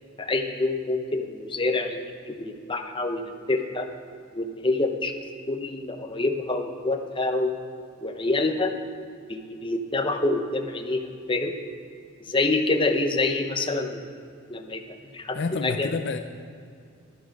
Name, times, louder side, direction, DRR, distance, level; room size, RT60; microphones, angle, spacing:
voice 1, 0.2-3.9 4.3-7.5 8.0-8.7 9.3-11.5 12.3-14.0 14.5-14.8 15.1-15.9, left 2 dB, 25° left, 5 dB, 0.8 m, -27 dB
voice 2, 15.3-16.2, left 4 dB, 55° left, 7 dB, 0.5 m, -28 dB
11.0 x 11.0 x 5.3 m, 2.3 s
head